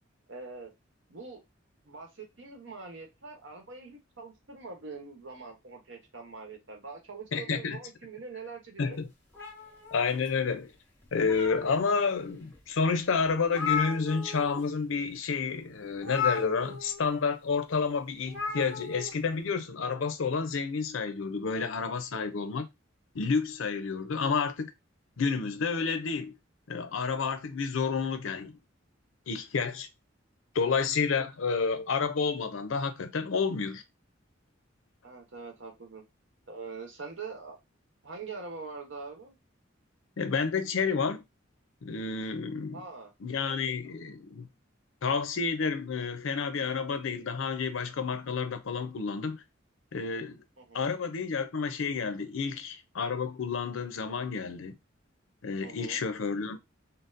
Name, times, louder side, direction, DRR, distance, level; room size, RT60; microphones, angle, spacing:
voice 1, 0.3-0.7 1.1-1.4 1.9-9.0 22.1-22.3 35.0-36.0 36.5-37.6 38.0-39.4 42.7-43.1 50.6-50.8 55.6-56.0, right 4 dB, 70° right, 1.0 m, -43 dB
voice 2, 7.3-7.8 8.8-9.1 9.9-10.7 11.1-22.7 23.1-24.7 25.2-26.3 26.7-28.5 29.3-29.9 30.5-33.8 40.2-41.2 41.8-42.8 43.2-44.5 45.0-49.4 49.9-50.4 50.7-54.8 55.4-56.6, left 5 dB, 85° left, 0.5 m, -30 dB
sound 1, 9.3-10.5 11.0-11.9 12.5-12.6 13.0-13.1 13.2-14.6 14.9-15.1 16.0-17.1 18.3-19.1, left 7 dB, 10° left, 1.2 m, -35 dB
3.9 x 2.0 x 2.6 m
head